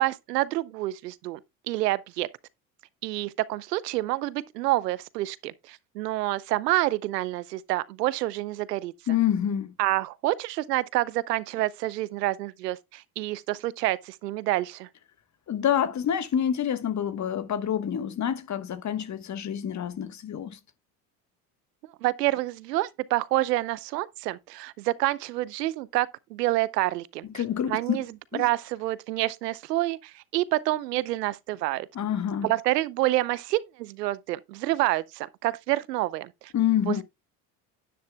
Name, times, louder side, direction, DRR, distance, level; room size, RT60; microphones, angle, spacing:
voice 1, 0.0-1.4 1.7-2.3 3.0-8.9 9.8-14.9 22.0-27.4 27.7-28.1 28.4-31.9 32.4-36.5 36.9-37.0, right 17 dB, 80° right, 0.8 m, -28 dB
voice 2, 9.1-9.7 15.5-20.6 27.3-28.0 28.3-28.5 31.9-32.5 36.5-37.0, left 9 dB, 35° left, 1.3 m, -27 dB
10.5 x 10.0 x 2.3 m
hypercardioid pair, 70°, 47 cm